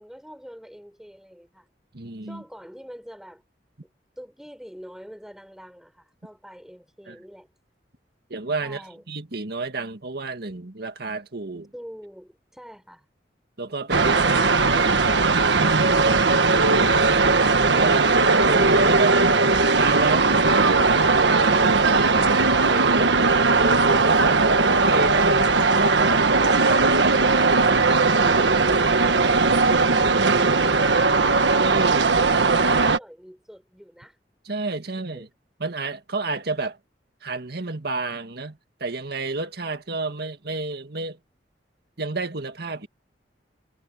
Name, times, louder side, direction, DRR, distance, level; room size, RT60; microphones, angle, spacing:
voice 1, 0.0-1.7 2.2-3.4 4.2-7.5 8.6-9.0 11.7-13.1 28.1-34.2 34.9-35.3, equal, 5° right, 5.6 m, -44 dB
voice 2, 1.9-2.4 7.1-7.2 8.3-8.8 9.1-11.7 13.6-15.0 15.6-16.3 16.6-17.3 17.7-19.2 19.7-22.3 22.7-23.2 23.5-26.2 26.7-27.4 31.6-32.1 34.4-35.3 35.6-36.8 37.2-41.2 42.0-42.9, right 3 dB, 65° right, 2.0 m, -30 dB
sound 1, 13.9-33.0, right 3 dB, 85° right, 1.5 m, -18 dB
head